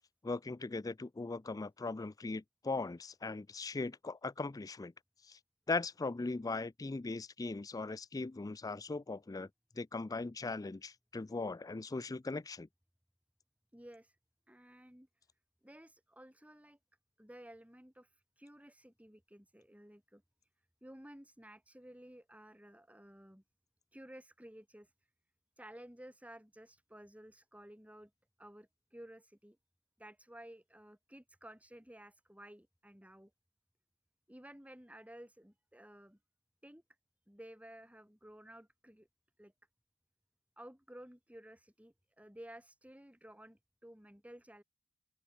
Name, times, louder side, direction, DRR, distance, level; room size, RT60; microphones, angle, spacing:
voice 1, 0.2-4.9 5.3-5.4 5.7-9.5 9.8-12.7, left 3 dB, 15° left, 0.4 m, -39 dB
voice 2, 13.7-14.2 14.5-15.1 15.6-16.8 17.2-20.2 20.8-23.4 23.9-24.9 25.6-28.1 28.4-29.6 30.0-33.3 34.3-36.2 36.6-36.8 37.3-39.1 39.4-39.5 40.6-44.6, right 1 dB, 5° right, 3.7 m, -54 dB
open air
head